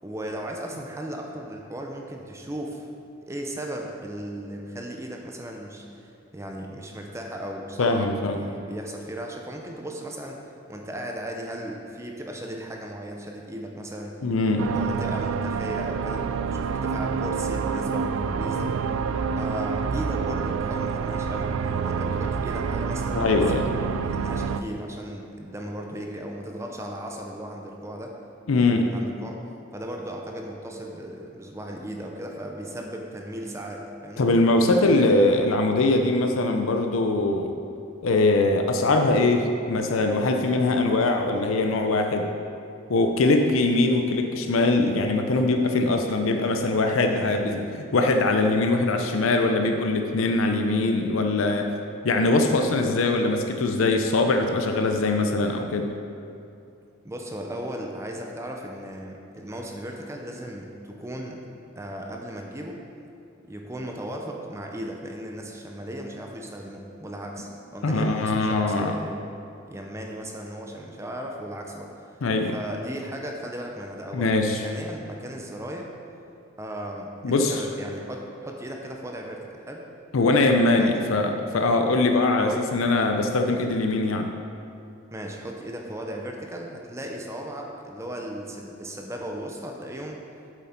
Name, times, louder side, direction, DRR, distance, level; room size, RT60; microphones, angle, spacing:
voice 1, 0.0-2.9 3.3-10.4 10.7-14.2 14.6-18.8 19.3-23.6 24.0-28.1 28.5-29.4 29.7-34.3 34.8-35.2 47.0-47.4 57.0-61.4 61.8-62.8 63.5-69.2 69.7-72.2 72.5-74.3 74.6-75.9 76.6-79.9 80.8-80.9 82.4-82.6 83.0-83.1 85.1-90.2, right 1 dB, 15° right, 1 dB, 0.6 m, -36 dB
voice 2, 7.8-8.4 14.2-14.7 23.1-23.7 28.5-28.8 34.2-37.5 38.0-42.3 42.9-47.6 47.9-51.7 52.0-55.9 67.8-69.0 72.2-72.6 74.1-74.7 77.2-77.7 80.1-84.3, left 2 dB, 75° left, 4 dB, 0.5 m, -22 dB
sound 1, 14.6-24.6, right 5 dB, 75° right, 0.3 m, -27 dB
7.7 x 7.5 x 4.3 m, 2.6 s
head